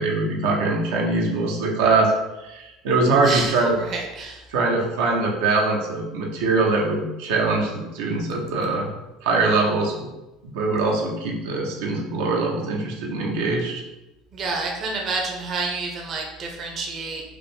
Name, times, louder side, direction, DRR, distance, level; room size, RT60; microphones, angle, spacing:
voice 1, 0.0-2.1 2.4-3.7 4.5-8.9 9.2-10.1 10.5-13.8, right 3 dB, 85° right, -1 dB, 0.8 m, -22 dB
voice 2, 3.3-4.4 14.3-17.2, right 3 dB, 40° right, 0 dB, 0.7 m, -29 dB
4.9 x 2.1 x 3.2 m, 1.0 s
supercardioid pair, 120°, 0 cm